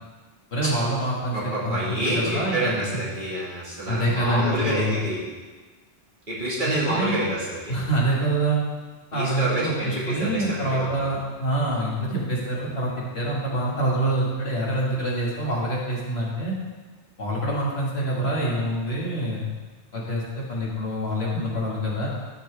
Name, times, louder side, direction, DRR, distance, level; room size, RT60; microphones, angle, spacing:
voice 1, 0.5-3.0 3.9-4.9 6.6-7.2 7.7-8.6 9.1-16.5 17.2-19.5 19.9-22.1, right 1 dB, 65° left, -5 dB, 2.2 m, -26 dB
voice 2, 1.3-5.2 6.3-7.7 9.1-11.0, right 1 dB, 45° right, -7 dB, 2.4 m, -28 dB
12.5 x 5.9 x 3.4 m, 1.3 s
omnidirectional pair, 1.2 m